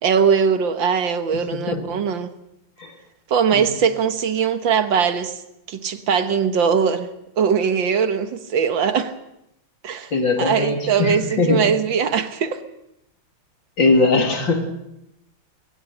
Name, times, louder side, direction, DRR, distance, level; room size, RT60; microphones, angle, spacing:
voice 1, 0.0-2.3 3.3-5.4 5.7-7.1 7.4-9.1 9.8-10.1 10.4-12.6, right 7 dB, 70° right, 9 dB, 1.9 m, -20 dB
voice 2, 10.1-11.6 13.8-14.7, left 3 dB, 65° left, 3 dB, 3.7 m, -20 dB
22.0 x 19.0 x 6.6 m, 0.84 s
omnidirectional pair, 2.2 m